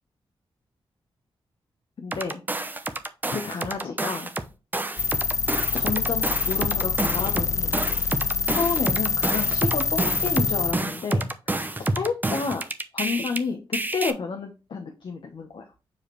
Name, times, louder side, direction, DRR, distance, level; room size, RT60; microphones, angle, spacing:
voice 1, 2.0-2.4 3.3-4.3 5.7-7.8 8.5-12.7 12.9-15.7, left 5 dB, 60° left, 4 dB, 1.1 m, -30 dB
sound 1, 2.1-4.5 4.7-13.4 13.7-14.1, right 2 dB, 20° right, 0.8 m, -29 dB
sound 2, 5.0-10.8, left 5 dB, 35° left, 0.5 m, -26 dB
7.0 x 5.0 x 3.2 m, 0.31 s
wide cardioid pair, 105°, 9 cm